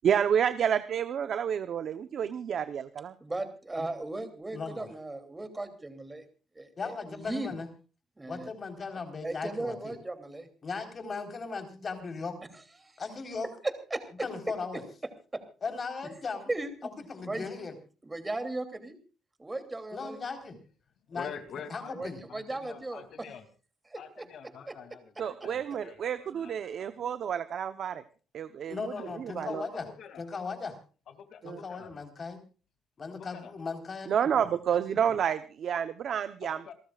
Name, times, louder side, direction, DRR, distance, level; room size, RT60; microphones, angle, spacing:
voice 1, 0.0-3.1 25.2-28.0 28.3-29.7 31.4-31.6 34.1-36.7, right 8 dB, 60° right, 11 dB, 0.9 m, -30 dB
voice 2, 3.2-6.2 6.5-7.5 8.2-8.5 9.2-10.5 12.8-13.0 13.9-14.3 14.7-14.8 15.3-15.4 16.5-16.9 17.2-17.5 18.0-19.0 19.4-20.2 21.9-23.0 23.9-24.3 24.7-24.8, right 2 dB, 15° right, 7 dB, 3.0 m, -37 dB
voice 3, 4.5-4.9 6.8-7.7 8.3-9.9 10.6-12.4 13.0-13.5 14.2-14.8 15.6-16.5 17.0-17.7 19.9-20.5 21.1-21.3 21.7-22.2 28.7-29.8 30.2-30.8 31.4-32.4 33.0-35.2, left 4 dB, 40° left, 6 dB, 4.1 m, -37 dB
voice 4, 21.1-23.5 24.0-26.5 26.8-27.1 28.9-30.2 31.1-31.9 33.2-33.5 36.5-36.7, left 7 dB, 65° left, 9 dB, 2.7 m, -47 dB
28.0 x 13.5 x 2.4 m, 0.36 s
cardioid pair, 100°, 0 cm